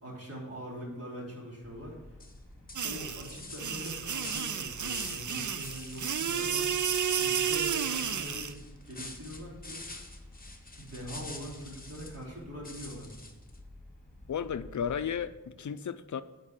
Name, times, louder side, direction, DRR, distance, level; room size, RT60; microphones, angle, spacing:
voice 1, 0.0-2.1 2.8-6.7 7.1-9.8 10.8-13.1, equal, 45° right, -3 dB, 3.3 m, -43 dB
sound 1, 1.6-15.3, left 1 dB, 5° left, 3.2 m, -52 dB
sound 2, 2.2-2.4 2.7-5.3 5.6-6.5 6.8-12.2 12.6-13.6, left 2 dB, 25° left, 1.1 m, -47 dB
sound 3, 2.8-8.5, right 7 dB, 60° right, 0.6 m, -31 dB
voice 2, 14.3-16.2, left 7 dB, 60° left, 13 dB, 0.5 m, -34 dB
8.8 x 4.8 x 7.3 m, 1.1 s
wide cardioid pair, 75°, 33 cm